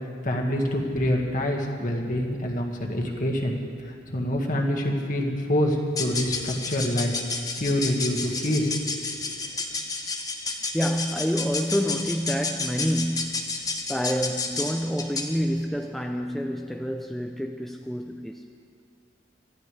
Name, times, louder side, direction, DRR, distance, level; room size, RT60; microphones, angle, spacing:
voice 1, 0.2-3.6 3.8-9.3, equal, 45° left, 1 dB, 1.8 m, -26 dB
sound 1, 5.9-15.4, left 3 dB, 20° left, 1.1 m, -31 dB
voice 2, 10.7-18.4, equal, ahead, 3 dB, 0.5 m, -28 dB
25.0 x 13.5 x 3.4 m, 2.3 s
head